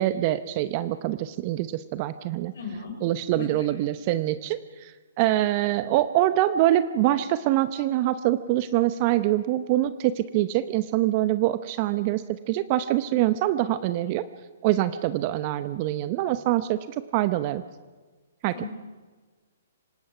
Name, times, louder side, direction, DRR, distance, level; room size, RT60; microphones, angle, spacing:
voice 1, 0.0-2.5 3.0-4.9 5.2-12.2 12.5-14.3 14.6-16.8 17.1-17.6 18.4-18.7, right 14 dB, 40° right, 13 dB, 0.8 m, -24 dB
voice 2, 2.5-2.9 3.3-3.8 18.5-18.7, left 5 dB, 65° left, -1 dB, 4.6 m, -37 dB
25.5 x 19.0 x 6.0 m, 1.4 s
figure-of-eight pair, 125°, 0 cm